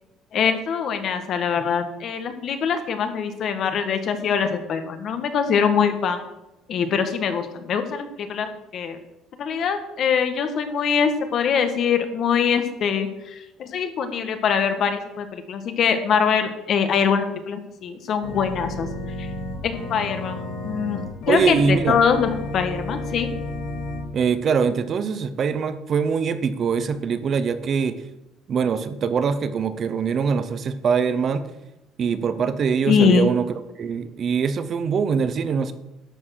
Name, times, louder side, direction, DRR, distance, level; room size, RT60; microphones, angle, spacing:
voice 1, 0.3-6.2 6.7-9.0 9.4-18.9 19.2-19.3 19.6-20.4 20.6-23.3 32.9-33.3, left 6 dB, 45° left, 8 dB, 1.5 m, -23 dB
Organ, 18.2-24.0, left 2 dB, 70° left, 3.4 m, -32 dB
voice 2, 21.3-22.0 24.1-28.0 28.5-31.4 32.0-35.7, right 6 dB, 40° right, 11 dB, 0.8 m, -23 dB
11.5 x 7.3 x 6.4 m, 0.95 s
cardioid pair, 150°, 0 cm